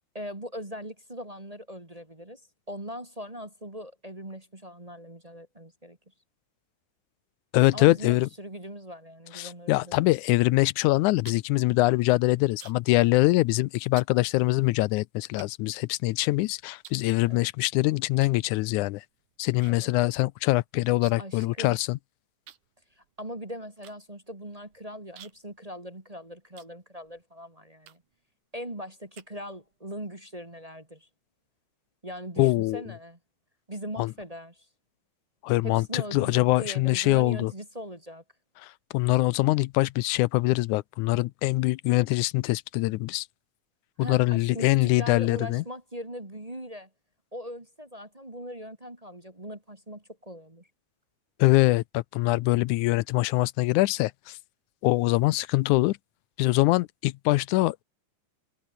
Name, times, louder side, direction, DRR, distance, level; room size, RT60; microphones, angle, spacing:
voice 1, 0.1-2.4 2.7-6.0 7.7-10.0 17.3-17.5 19.7-19.9 21.2-21.8 23.0-28.0 28.5-31.1 32.0-33.2 33.7-34.7 35.6-38.2 44.0-46.9 47.3-50.7, equal, 15° right, 2.0 m, -40 dB
voice 2, 7.5-8.3 9.3-19.0 19.4-22.0 32.4-32.8 34.0-34.1 35.4-37.5 38.6-43.3 44.0-45.6 51.4-54.4 54.8-56.0 56.4-57.8, left 19 dB, 85° left, 2.0 m, -24 dB
sound 1, 10.9-13.0 13.3-13.6 14.0-14.2 14.8-14.9 15.4-16.3 16.8-17.7 18.1-18.5 18.8-19.7 20.0-20.1 20.4-21.4 21.7-21.8 22.5-27.2 27.8-28.2 28.7-29.8, right 10 dB, 85° right, 3.2 m, -52 dB
omnidirectional pair, 3.4 m